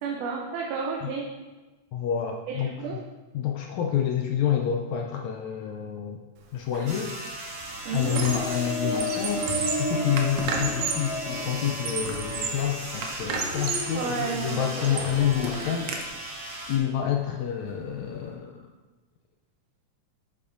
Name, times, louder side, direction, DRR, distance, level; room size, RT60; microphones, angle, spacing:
voice 1, 0.0-1.3 2.5-3.0 7.9-8.3 13.9-14.6, right 5 dB, 85° right, 0 dB, 2.3 m, -31 dB
voice 2, 1.9-2.7 3.3-6.2 6.5-7.2 7.9-15.9 16.7-18.7, left 9 dB, 80° left, 2 dB, 1.8 m, -28 dB
Squeak, 6.7-7.0 7.4-8.6 8.9-11.1 11.6-12.7 13.0-14.0 14.5-16.0, right 5 dB, 70° right, 1.9 m, -32 dB
sound 1, 6.9-16.8, right 1 dB, 45° right, 2.3 m, -38 dB
sound 2, 8.3-18.3, left 1 dB, 25° left, 1.6 m, -35 dB
9.7 x 7.8 x 2.6 m, 1.2 s
omnidirectional pair, 3.5 m